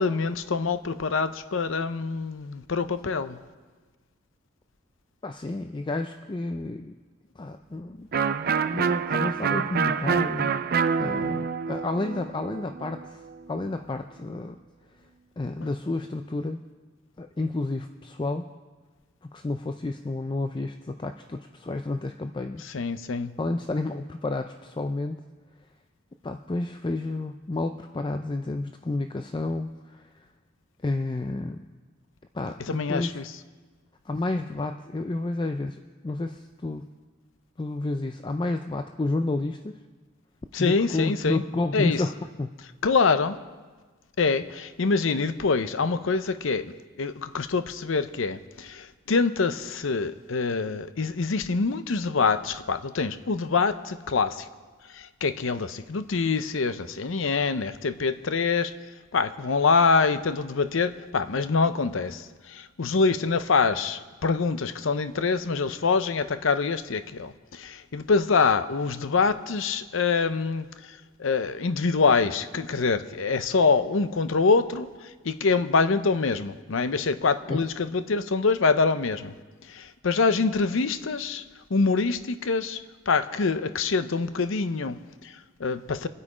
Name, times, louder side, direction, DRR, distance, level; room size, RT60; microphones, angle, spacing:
voice 1, 0.0-3.4 22.6-23.3 32.7-33.3 40.5-41.4 41.7-42.0 42.8-43.4 44.2-54.5 54.9-58.7 59.1-79.3 79.7-81.4 81.7-86.1, left 4 dB, 75° left, 12 dB, 0.6 m, -25 dB
voice 2, 5.2-7.0 7.4-8.1 8.7-10.5 11.0-13.2 13.5-14.6 15.4-16.6 17.2-18.5 19.2-22.6 23.4-25.2 26.2-30.1 30.8-31.6 32.3-33.2 34.1-36.9 37.6-39.8 40.6-42.5 77.5-77.6, left 2 dB, 25° left, 7 dB, 0.4 m, -30 dB
Electric guitar, 8.1-13.7, right 6 dB, 50° right, 0.5 m, -27 dB
25.5 x 8.5 x 5.0 m, 1.4 s
head